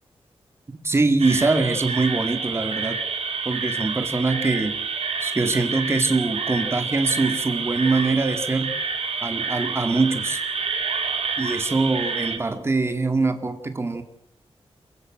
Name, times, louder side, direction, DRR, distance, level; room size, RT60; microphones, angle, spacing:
voice 1, 0.7-3.0 3.5-4.8 5.2-8.7 9.2-10.4 11.4-14.0, right 3 dB, 25° right, 8 dB, 2.2 m, -23 dB
sound 1, 1.2-12.4, right 5 dB, 85° right, 3.0 m, -28 dB
28.5 x 15.0 x 7.8 m, 0.76 s
wide cardioid pair, 180°, 10 cm